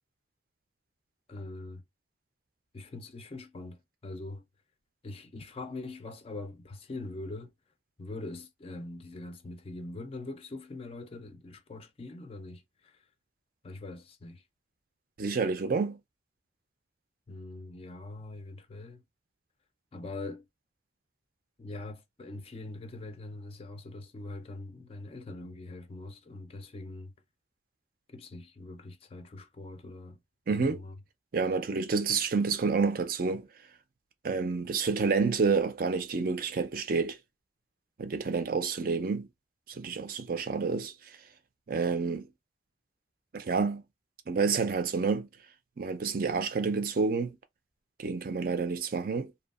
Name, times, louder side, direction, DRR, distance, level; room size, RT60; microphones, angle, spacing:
voice 1, 1.3-1.8 2.7-4.4 5.0-7.5 8.0-13.0 13.6-14.4 17.3-19.0 19.9-20.4 21.6-27.1 28.1-30.2 30.5-30.9, left 2 dB, 30° left, 0.4 m, -43 dB
voice 2, 15.2-16.0 30.5-30.8 31.3-33.5 34.2-37.2 38.0-39.3 39.7-40.9 41.7-42.3 43.3-43.8 44.3-45.3 45.8-47.4 48.0-49.3, right 4 dB, 50° right, 0.4 m, -29 dB
2.7 x 2.3 x 2.3 m
head